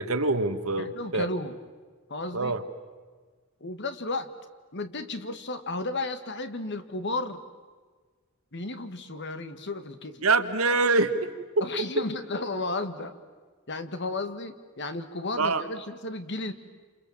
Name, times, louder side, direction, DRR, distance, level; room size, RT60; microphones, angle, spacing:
voice 1, 0.0-1.3 2.3-2.6 10.2-11.3 11.6-11.7 15.4-15.6, right 3 dB, 80° right, 9 dB, 1.7 m, -24 dB
voice 2, 0.8-1.6 2.1-2.5 3.6-4.3 4.7-7.4 8.5-10.2 11.6-13.2 13.7-16.5, left 2 dB, 55° left, 10 dB, 1.8 m, -33 dB
28.5 x 28.0 x 7.3 m, 1.5 s
head